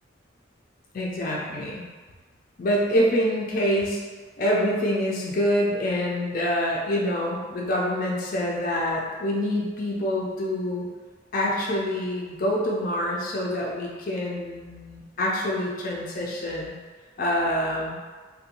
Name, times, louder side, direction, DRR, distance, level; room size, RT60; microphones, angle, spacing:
voice 1, 0.9-1.9 2.6-4.0 4.4-10.9 11.3-16.8 17.2-17.9, equal, 45° left, -3 dB, 0.4 m, -26 dB
2.5 x 2.2 x 2.8 m, 1.4 s
head